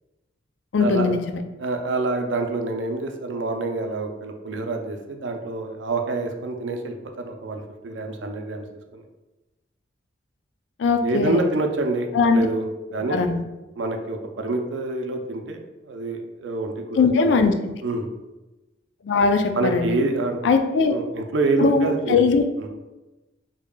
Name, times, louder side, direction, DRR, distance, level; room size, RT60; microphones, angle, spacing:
voice 1, 0.7-1.4 10.8-11.4 12.1-12.5 13.1-13.4 16.9-17.5 19.0-20.0 20.4-20.9 21.6-22.4, left 4 dB, 80° left, 7 dB, 0.4 m, -20 dB
voice 2, 1.6-8.7 8.9-9.0 11.0-12.6 12.9-13.2 13.8-17.4 17.8-18.1 19.5-20.4 20.9-22.2 22.6-22.7, right 2 dB, 85° right, 4 dB, 0.5 m, -27 dB
4.8 x 2.8 x 2.2 m, 1.1 s
head